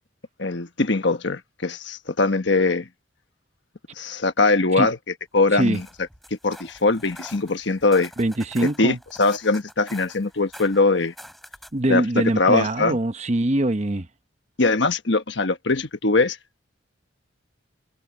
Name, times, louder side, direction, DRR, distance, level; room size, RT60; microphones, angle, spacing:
voice 1, 0.4-2.9 4.0-5.0 5.3-5.9 6.4-8.1 8.6-11.1 11.9-13.0 14.6-16.4, left 3 dB, 60° left, 1.3 m, -21 dB
sound 1, 5.5-11.9, equal, ahead, 6.3 m, -45 dB
voice 2, 8.2-9.0 11.7-14.1, right 1 dB, 35° right, 0.9 m, -23 dB
head